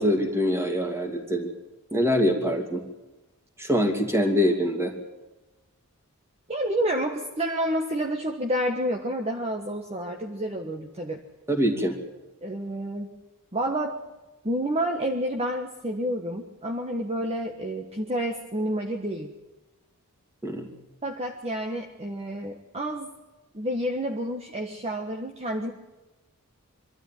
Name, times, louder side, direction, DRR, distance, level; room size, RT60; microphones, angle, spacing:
voice 1, 0.0-1.5 1.9-2.8 3.6-4.9 11.5-11.9 20.4-20.7, equal, 10° right, 3 dB, 2.9 m, -24 dB
voice 2, 6.5-11.2 12.4-13.2 13.5-14.0 14.4-19.3 21.0-23.1 23.5-25.7, right 1 dB, 30° right, 3 dB, 1.4 m, -29 dB
25.0 x 13.0 x 9.3 m, 1.1 s
head